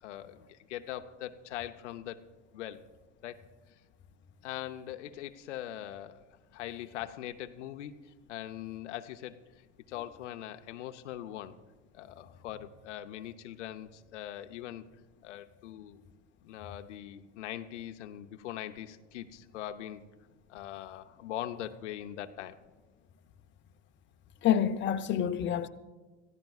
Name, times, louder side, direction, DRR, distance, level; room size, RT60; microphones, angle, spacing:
voice 1, 0.0-2.2 2.5-2.9 3.2-3.4 4.4-6.2 6.5-7.9 8.3-9.4 9.9-11.6 11.9-14.8 15.2-16.0 16.4-20.0 20.5-22.6, left 12 dB, 85° left, 0.8 m, -41 dB
voice 2, 24.4-25.7, left 9 dB, 35° left, 0.8 m, -27 dB
26.0 x 15.0 x 2.4 m
supercardioid pair, 105°, 35 cm